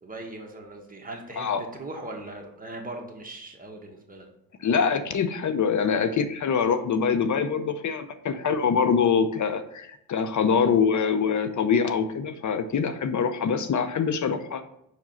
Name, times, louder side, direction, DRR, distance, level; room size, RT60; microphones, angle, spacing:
voice 1, 0.0-4.3 10.7-10.8, right 2 dB, 25° right, 1 dB, 1.6 m, -39 dB
voice 2, 4.6-14.6, left 6 dB, 50° left, 10 dB, 0.7 m, -24 dB
5.2 x 4.8 x 4.5 m, 0.76 s
cardioid pair, 80°, 37 cm